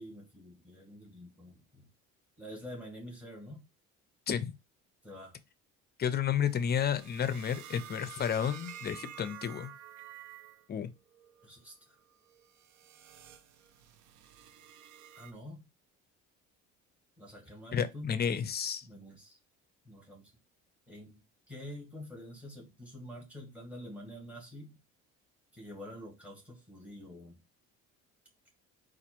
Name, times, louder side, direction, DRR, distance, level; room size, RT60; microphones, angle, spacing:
voice 1, 0.0-1.9 2.4-3.7 5.0-5.4 11.4-12.0 15.2-15.7 17.2-18.1 18.8-19.4 19.8-20.3 20.9-21.2 21.5-24.8 25.5-27.4, equal, 5° right, 1.9 m, -47 dB
voice 2, 6.0-9.7 10.7-10.9 17.7-18.8, left 8 dB, 30° left, 0.5 m, -31 dB
sound 1, 6.5-10.7 11.1-11.5 12.1-15.3, right 10 dB, 70° right, 0.6 m, -50 dB
4.1 x 2.5 x 4.4 m
cardioid pair, 115°, 31 cm